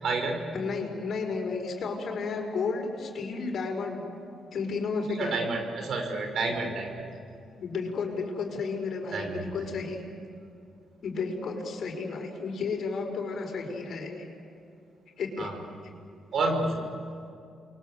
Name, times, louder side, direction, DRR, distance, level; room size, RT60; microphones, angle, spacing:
voice 1, 0.0-0.5 5.1-7.0 9.1-9.4 15.4-15.6 16.3-16.8, right 3 dB, 65° right, 4 dB, 5.7 m, -29 dB
voice 2, 0.5-4.0 4.5-5.4 6.5-6.6 7.6-10.0 11.0-14.3 15.2-15.5, left 4 dB, 65° left, 2 dB, 5.8 m, -32 dB
29.5 x 23.5 x 8.0 m, 2.5 s
supercardioid pair, 60°, 0 cm